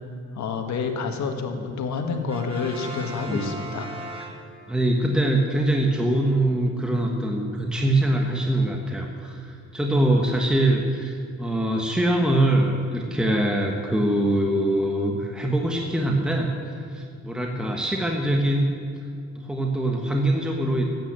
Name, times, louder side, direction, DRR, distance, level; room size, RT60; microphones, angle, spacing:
voice 1, 0.3-3.9, left 5 dB, 65° left, 5 dB, 1.6 m, -28 dB
Brass instrument, 2.3-4.9, right 1 dB, 20° right, 2.2 m, -38 dB
voice 2, 4.7-18.7 19.3-20.9, right 1 dB, 5° right, 1 dB, 1.3 m, -23 dB
13.0 x 8.9 x 7.5 m, 2.3 s
cardioid pair, 90°, 30 cm